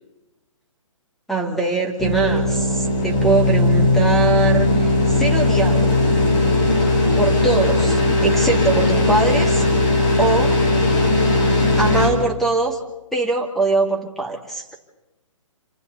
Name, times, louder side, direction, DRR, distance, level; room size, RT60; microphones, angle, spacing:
voice 1, 1.3-6.0 7.2-9.7 10.2-10.6 11.8-12.8 13.1-14.7, right 3 dB, ahead, 1 dB, 2.5 m, -22 dB
sound 1, 2.0-12.1, left 2 dB, 25° left, 4.2 m, -18 dB
27.5 x 27.0 x 4.1 m, 1.0 s
hypercardioid pair, 145°, 17 cm